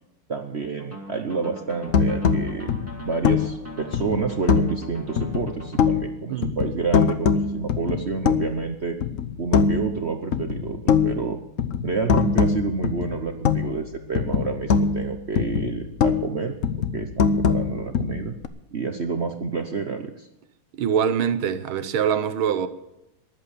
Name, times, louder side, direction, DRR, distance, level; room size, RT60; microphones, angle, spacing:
voice 1, 0.3-2.7 3.0-9.0 9.4-11.4 11.8-16.5 16.9-18.3 18.7-20.3, right 5 dB, 50° right, 0.8 m, -29 dB
sound 1, 0.8-5.8, right 1 dB, 5° right, 1.9 m, -40 dB
sound 2, 1.9-4.8 5.2-6.2 6.4-8.7 9.0-10.0 10.3-13.9 14.1-16.3 16.6-18.5, left 6 dB, 60° left, 0.8 m, -23 dB
voice 2, 20.7-22.7, right 8 dB, 80° right, 1.8 m, -24 dB
13.5 x 11.0 x 6.9 m
omnidirectional pair, 2.3 m